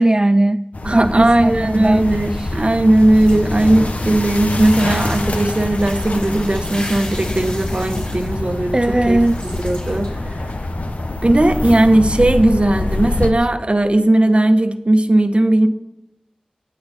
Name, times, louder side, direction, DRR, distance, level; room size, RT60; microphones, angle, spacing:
voice 1, 0.0-0.6 0.9-2.0 2.4-2.5 8.7-9.4, right 1 dB, 30° right, 11 dB, 0.3 m, -17 dB
sound 1, 0.7-13.3, left 2 dB, 85° left, 1.0 m, -25 dB
voice 2, 0.8-8.8 9.1-9.2 9.6-10.4 11.2-15.7, right 1 dB, 50° right, 8 dB, 1.1 m, -16 dB
sound 2, 1.7-10.7, left 1 dB, 65° left, 4.3 m, -37 dB
19.0 x 8.6 x 4.2 m, 0.94 s
wide cardioid pair, 45°, 2 cm